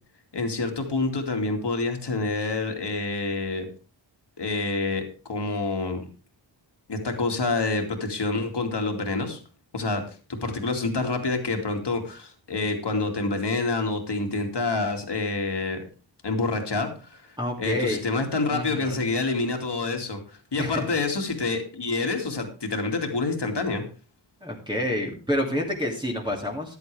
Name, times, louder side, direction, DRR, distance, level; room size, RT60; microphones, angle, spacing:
voice 1, 0.3-3.7 4.4-6.0 6.9-9.4 9.7-10.0 10.3-15.8 16.2-20.2 20.5-23.8, left 3 dB, 60° left, 4 dB, 2.5 m, -27 dB
voice 2, 17.4-18.0 18.5-19.0 20.6-20.9 24.4-26.8, left 1 dB, 10° right, -2 dB, 2.6 m, -28 dB
14.5 x 10.5 x 3.4 m, 0.36 s
wide cardioid pair, 85°, 47 cm